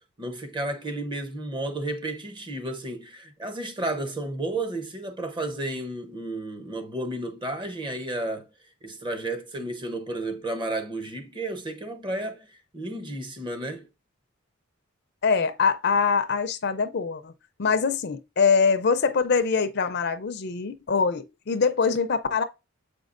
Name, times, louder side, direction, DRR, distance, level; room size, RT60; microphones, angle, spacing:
voice 1, 0.2-8.5 8.8-13.9, right 2 dB, 20° right, 0.8 m, -32 dB
voice 2, 15.2-17.3 17.6-22.4, left 5 dB, 50° left, 0.5 m, -23 dB
7.7 x 5.1 x 2.5 m
head